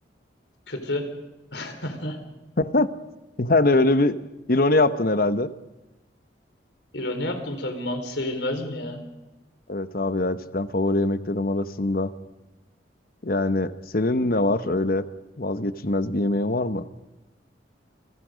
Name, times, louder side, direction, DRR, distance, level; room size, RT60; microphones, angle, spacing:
voice 1, 0.7-1.0 1.5-2.2 6.9-9.0, left 1 dB, 80° left, 6 dB, 4.2 m, -30 dB
voice 2, 2.6-2.9 3.4-4.2 4.5-5.5 9.7-12.1 13.2-15.0 15.4-16.8, left 2 dB, 55° left, 11 dB, 1.1 m, -22 dB
29.0 x 22.5 x 5.2 m, 1.0 s
head